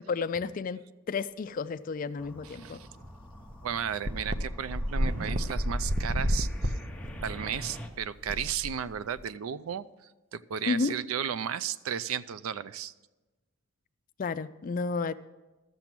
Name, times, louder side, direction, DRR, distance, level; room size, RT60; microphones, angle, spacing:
voice 1, 0.1-0.8 1.1-2.8 10.7-10.9 14.2-15.1, left 4 dB, 40° left, 14 dB, 0.3 m, -31 dB
sound 1, 2.2-7.9, equal, 5° left, 0.7 m, -46 dB
voice 2, 2.4-2.9 3.6-6.7 7.2-12.9, right 8 dB, 85° right, 17 dB, 0.4 m, -34 dB
sound 2, 3.0-3.1 3.4-3.5 4.1-9.2, equal, 40° right, 0.7 m, -31 dB
13.5 x 6.9 x 6.0 m, 1.2 s
head